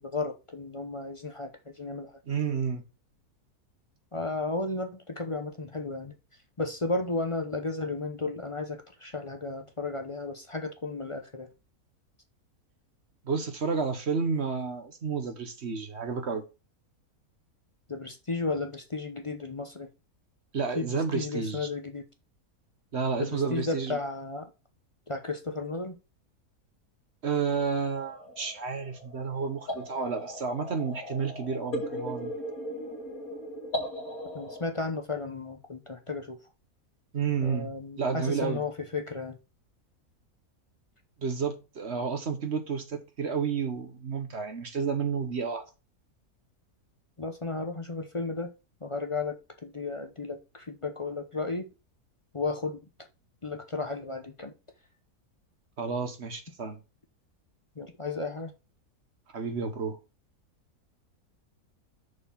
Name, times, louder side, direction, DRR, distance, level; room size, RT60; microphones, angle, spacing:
voice 1, 0.0-2.1 4.1-6.1 6.6-11.5 17.9-19.9 20.8-22.0 23.2-24.5 25.1-25.9 34.3-36.4 37.4-39.4 47.2-48.5 48.8-51.7 52.3-52.8 53.4-54.5 57.8-58.5, left 3 dB, 30° left, 0.6 m, -34 dB
voice 2, 2.3-2.8 13.2-16.5 20.5-21.7 22.9-24.0 27.2-32.3 37.1-37.7 38.0-38.6 41.2-45.6 55.8-56.8 59.3-60.0, right 5 dB, 50° right, 1.2 m, -31 dB
sound 1, 28.0-34.7, equal, 65° left, 2.1 m, -38 dB
6.5 x 4.4 x 5.6 m
omnidirectional pair, 1.6 m